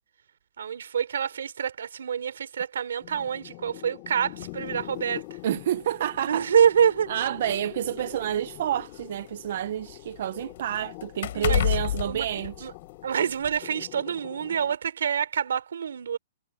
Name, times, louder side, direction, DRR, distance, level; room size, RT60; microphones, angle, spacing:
voice 1, 0.6-5.2 6.3-7.1 11.3-11.7 12.0-12.3 12.6-12.7 13.0-16.2, right 8 dB, 85° right, 3.4 m, -26 dB
sound 1, 3.0-14.8, left 24 dB, 30° left, 5.7 m, -44 dB
College door close, 4.4-4.6 5.6-5.7 6.2-6.3 7.3-9.2 9.6-13.0 13.4-13.6, left 12 dB, 55° left, 3.4 m, -30 dB
voice 2, 5.4-6.5 7.1-12.7, right 11 dB, 50° right, 0.5 m, -29 dB
hypercardioid pair, 170°, 0 cm